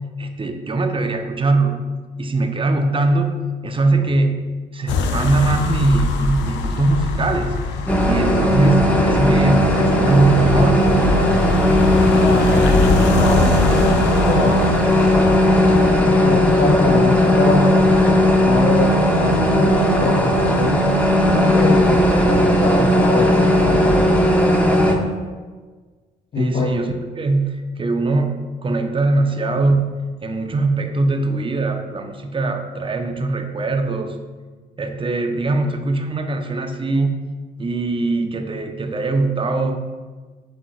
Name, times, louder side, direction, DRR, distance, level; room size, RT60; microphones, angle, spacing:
voice 1, 0.2-1.9 2.2-4.4 4.7-7.6 8.0-10.9 26.3-34.1 34.8-37.2 37.6-39.8, right 2 dB, 30° right, 5 dB, 0.6 m, -21 dB
sound 1, 4.9-16.0, left 3 dB, 80° left, 0.4 m, -23 dB
sound 2, 7.9-25.0, equal, 5° left, 0.8 m, -16 dB
voice 2, 12.2-12.7 13.1-13.6 14.2-15.2 16.0-17.8 18.4-20.9 21.4-23.8 26.3-26.7, left 3 dB, 50° left, -4 dB, 0.8 m, -23 dB
7.5 x 2.8 x 2.4 m, 1.4 s
supercardioid pair, 60°, 18 cm